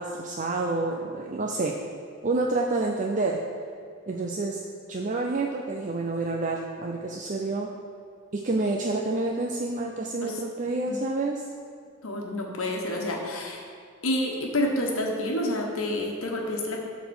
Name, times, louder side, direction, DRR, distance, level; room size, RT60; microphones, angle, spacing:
voice 1, 0.0-1.8 2.2-3.4 4.1-4.6 4.9-7.7 8.3-11.4, right 3 dB, 35° right, 0 dB, 0.6 m, -28 dB
voice 2, 12.0-13.6 14.0-16.8, left 1 dB, 65° left, 0 dB, 1.4 m, -28 dB
12.0 x 4.2 x 7.1 m, 2.3 s
head